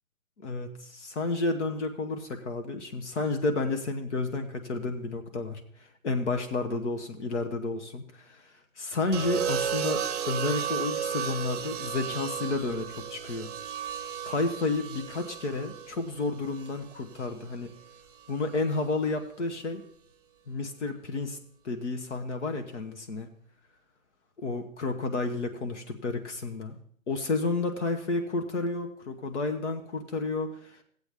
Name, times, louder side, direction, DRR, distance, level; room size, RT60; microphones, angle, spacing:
voice 1, 0.4-5.6 6.0-8.0 8.8-13.5 14.3-17.7 18.3-19.8 20.5-21.4 21.6-23.3 24.4-26.8 27.1-30.5, left 3 dB, 60° left, 5 dB, 1.2 m, -31 dB
sound 1, 9.1-17.3 18.5-18.9, right 8 dB, 30° right, 0.8 m, -34 dB
14.5 x 8.0 x 3.4 m, 0.62 s
hypercardioid pair, 150°, 40 cm